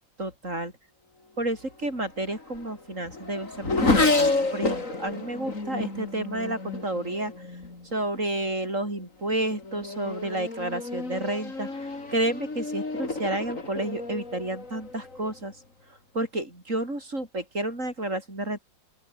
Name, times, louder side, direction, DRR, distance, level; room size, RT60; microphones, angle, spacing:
voice 1, 0.2-0.7 1.4-7.3 7.8-15.6 15.9-18.6, right 1 dB, 40° right, 7.7 m, -31 dB
Race car auto racing / Accelerating revving vroom, 2.0-7.9 8.7-9.0 9.5-15.4, left 3 dB, 40° left, 4.3 m, -30 dB
open air
omnidirectional pair, 2.1 m